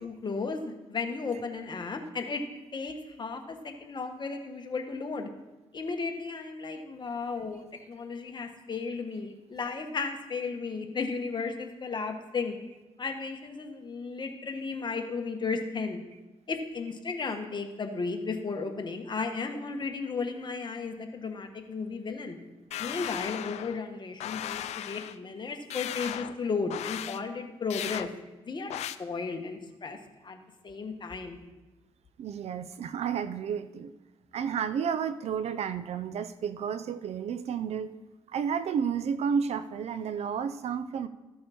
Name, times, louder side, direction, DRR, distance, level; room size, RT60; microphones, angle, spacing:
voice 1, 0.0-2.4 2.7-5.3 5.7-12.6 13.0-16.0 16.5-22.4 22.8-28.1 28.4-28.7 29.0-30.0 30.2-31.4, left 4 dB, 45° left, 4 dB, 1.5 m, -34 dB
sound 1, 22.7-23.8 24.2-25.2 25.7-26.4 26.7-27.2 27.7-28.1 28.7-29.0, left 11 dB, 80° left, 0.4 m, -36 dB
voice 2, 32.2-33.9 34.3-38.0 38.3-41.1, right 7 dB, 70° right, 13 dB, 0.5 m, -31 dB
14.0 x 6.4 x 4.3 m, 1.1 s
cardioid pair, 70°, 11 cm